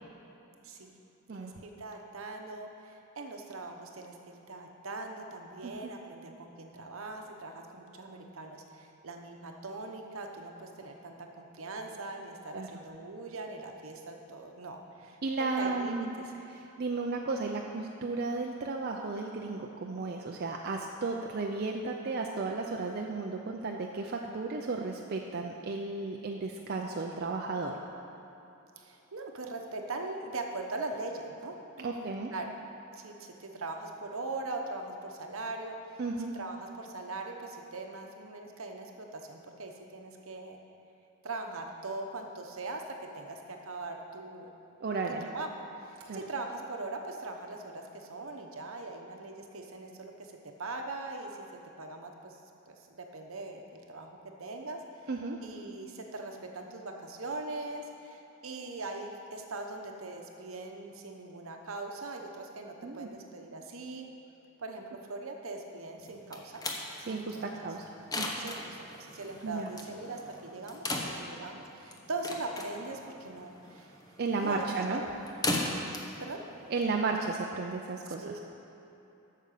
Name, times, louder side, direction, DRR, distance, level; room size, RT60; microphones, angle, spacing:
voice 1, 1.3-15.2 15.6-16.2 28.8-32.5 32.9-40.6 41.2-44.5 45.3-45.5 45.8-50.3 50.6-52.4 52.7-54.8 55.4-64.1 64.6-66.6 67.1-67.7 68.4-73.9 74.4-75.1 76.2-76.4 78.2-78.4, right 2 dB, 70° right, 3 dB, 1.0 m, -41 dB
voice 2, 15.2-16.1 16.5-27.8 31.8-32.3 36.0-36.3 44.8-45.3 46.1-46.2 55.1-55.4 62.8-63.1 67.1-68.3 69.4-69.7 74.2-75.0 76.7-78.4, right 3 dB, 50° right, 1 dB, 0.5 m, -34 dB
sound 1, 66.0-77.5, left 2 dB, 20° left, 0.8 m, -38 dB
8.6 x 6.6 x 6.6 m, 2.9 s
head